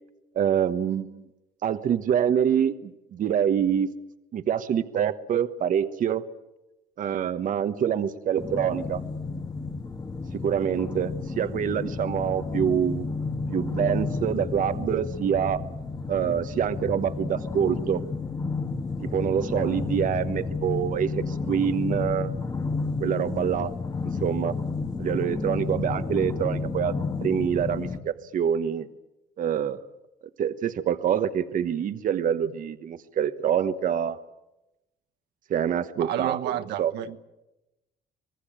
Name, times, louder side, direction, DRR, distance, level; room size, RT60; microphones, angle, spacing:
voice 1, 0.3-1.2 1.6-3.9 4.3-6.2 7.0-9.0 10.3-13.1 13.5-15.6 16.1-18.0 19.0-22.3 23.0-23.7 24.2-24.5 25.0-26.9 27.2-28.9 29.4-29.8 30.4-34.2 35.5-36.4 36.8-36.9, right 9 dB, 50° right, 1.2 m, -26 dB
sound 1, 8.4-28.0, left 4 dB, 25° left, 1.6 m, -31 dB
voice 2, 36.0-37.2, right 12 dB, 80° right, 1.4 m, -31 dB
25.5 x 19.5 x 8.9 m
cardioid pair, 110°, 17 cm